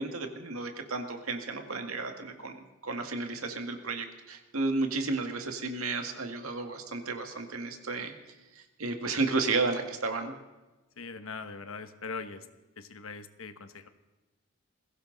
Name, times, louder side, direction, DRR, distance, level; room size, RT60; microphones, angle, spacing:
voice 1, 0.0-8.1 8.5-10.3, right 3 dB, 85° right, 5 dB, 2.1 m, -32 dB
voice 2, 11.0-12.4 12.8-13.9, left 4 dB, 75° left, 10 dB, 1.2 m, -41 dB
21.5 x 16.5 x 4.0 m, 1.1 s
head